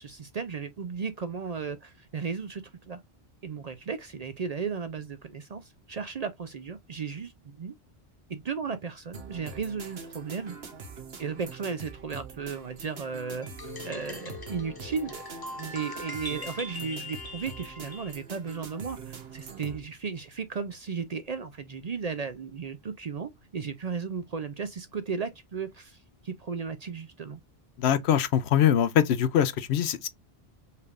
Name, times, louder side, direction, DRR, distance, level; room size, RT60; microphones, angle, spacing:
voice 1, 0.0-3.0 3.4-7.7 8.3-10.6 11.2-13.5 13.8-15.2 15.6-27.4, right 5 dB, 50° right, 0.5 m, -35 dB
sound 1, 9.1-19.8, right 5 dB, 70° right, 1.2 m, -44 dB
sound 2, 13.4-18.2, left 2 dB, 25° left, 0.6 m, -41 dB
voice 2, 27.8-30.1, left 9 dB, 85° left, 0.9 m, -23 dB
5.6 x 3.3 x 2.4 m
omnidirectional pair, 1.1 m